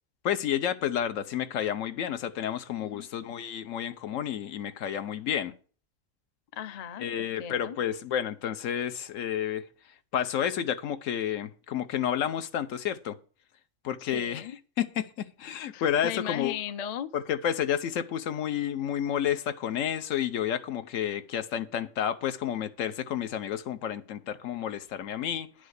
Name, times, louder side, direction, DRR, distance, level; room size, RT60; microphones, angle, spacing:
voice 1, 0.2-5.5 7.0-9.7 10.1-13.2 13.8-14.5 14.8-16.6 17.1-25.5, left 9 dB, 80° left, 1.1 m, -30 dB
voice 2, 6.5-7.8 14.0-14.6 15.7-17.1, left 10 dB, 50° left, 0.4 m, -37 dB
10.0 x 5.0 x 8.0 m
omnidirectional pair, 1.3 m